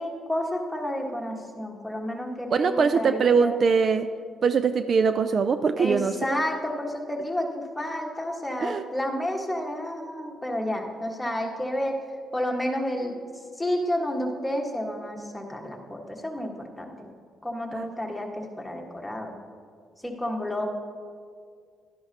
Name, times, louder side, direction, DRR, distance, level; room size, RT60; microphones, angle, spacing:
voice 1, 0.0-3.6 5.8-12.0 12.3-13.2 13.6-17.1 17.4-19.3 20.0-20.7, left 1 dB, 5° left, 0 dB, 1.5 m, -30 dB
voice 2, 2.5-4.1 4.4-6.5 8.6-8.9 17.7-17.9, right 5 dB, 50° right, 10 dB, 0.3 m, -22 dB
11.5 x 10.5 x 2.8 m, 2.1 s
cardioid pair, 90°, 0 cm